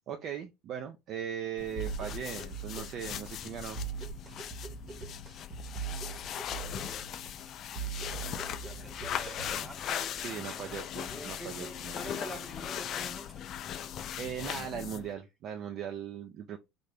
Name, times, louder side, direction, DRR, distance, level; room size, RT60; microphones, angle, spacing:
voice 1, 0.0-3.8 10.2-12.3 14.2-16.6, right 8 dB, 50° right, 0.4 m, -39 dB
sound 1, 1.6-15.1, left 10 dB, 45° left, 0.3 m, -39 dB
sound 2, 1.8-9.8, right 7 dB, 25° right, 0.9 m, -41 dB
voice 2, 6.1-7.1 7.7-10.8 11.1-13.5, left 1 dB, ahead, 0.9 m, -47 dB
3.8 x 2.1 x 3.3 m
supercardioid pair, 125°, 0 cm